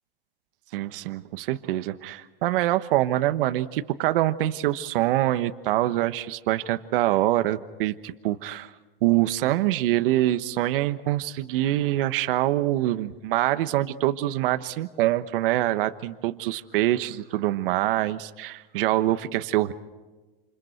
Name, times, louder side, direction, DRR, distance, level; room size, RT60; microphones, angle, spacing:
voice 1, 0.7-8.7 9.0-19.7, right 15 dB, 65° right, 10 dB, 1.2 m, -25 dB
28.5 x 28.0 x 4.5 m, 1.2 s
supercardioid pair, 140°, 30 cm